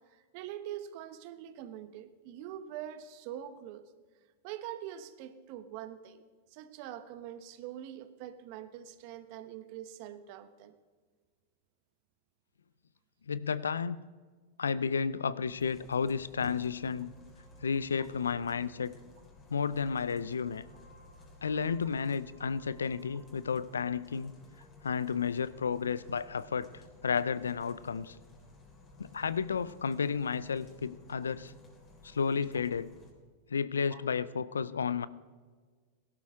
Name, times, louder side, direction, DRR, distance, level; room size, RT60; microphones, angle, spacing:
voice 1, 0.1-3.8 4.4-6.2 6.5-10.7 18.0-18.1 33.9-34.0, right 11 dB, 55° right, 11 dB, 1.0 m, -44 dB
voice 2, 13.3-14.0 14.6-17.1 17.6-18.9 19.5-20.6 21.4-24.3 24.8-26.7 27.0-28.2 29.0-31.5 32.0-32.9 33.5-35.1, left 6 dB, 90° left, 18 dB, 0.5 m, -32 dB
sound 1, 15.5-33.1, left 2 dB, 30° left, 3.3 m, -56 dB
18.0 x 12.0 x 3.6 m, 1.5 s
hypercardioid pair, 105°, 0 cm